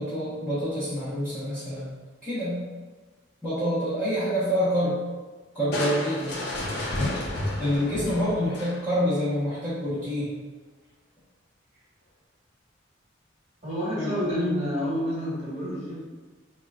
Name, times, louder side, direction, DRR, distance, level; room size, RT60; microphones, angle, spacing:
voice 1, 0.0-1.9 2.2-2.6 3.4-5.0 5.5-6.4 7.6-10.3 14.0-14.6, equal, 5° left, -15 dB, 1.0 m, -27 dB
Crushing, 5.7-9.1, left 1 dB, 55° left, 0.5 m, -31 dB
voice 2, 13.6-16.0, equal, 35° right, -7 dB, 1.2 m, -29 dB
3.7 x 2.3 x 2.3 m, 1.3 s
head